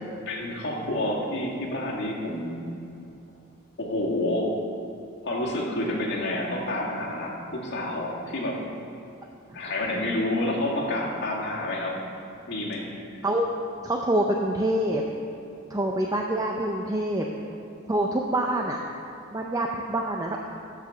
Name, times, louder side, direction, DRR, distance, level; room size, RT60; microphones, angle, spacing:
voice 1, 0.3-2.6 3.8-4.5 5.2-8.6 9.5-12.0 12.5-12.9, left 1 dB, 55° left, -4 dB, 2.0 m, -29 dB
voice 2, 13.8-15.0 15.7-17.3 17.9-18.8 19.3-20.5, right 1 dB, 15° right, 1 dB, 0.5 m, -26 dB
12.0 x 5.0 x 6.9 m, 2.7 s
head